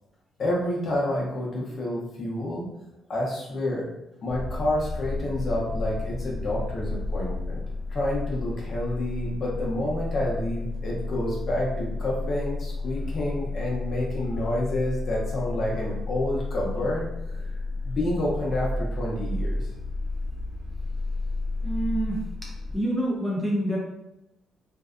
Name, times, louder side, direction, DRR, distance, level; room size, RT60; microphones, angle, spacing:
voice 1, 0.4-2.7 3.1-3.9 4.2-7.6 7.9-17.1 17.8-19.6, left 1 dB, 50° left, -4 dB, 0.8 m, -29 dB
sound 1, 4.3-22.8, left 2 dB, 75° right, 0.6 m, -32 dB
voice 2, 21.6-22.2 22.7-23.8, right 1 dB, ahead, -4 dB, 0.7 m, -27 dB
2.6 x 2.2 x 2.4 m, 0.88 s
cardioid pair, 90°, 0 cm